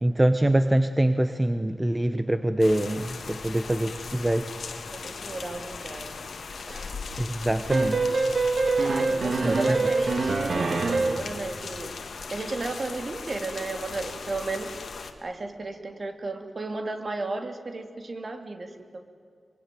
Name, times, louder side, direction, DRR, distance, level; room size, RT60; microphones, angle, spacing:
voice 1, 0.0-4.5 7.2-8.2 9.4-9.5, right 1 dB, 15° right, 9 dB, 1.0 m, -24 dB
sound 1, 2.6-15.1, left 4 dB, 75° left, 2.0 m, -38 dB
voice 2, 4.9-6.1 6.7-6.9 8.8-11.9 12.3-14.7 15.2-19.0, right 3 dB, 45° right, 6 dB, 2.6 m, -34 dB
sound 2, 7.7-11.3, right 3 dB, 65° right, 2.0 m, -25 dB
24.0 x 23.5 x 9.3 m, 2.2 s
wide cardioid pair, 100°, 0 cm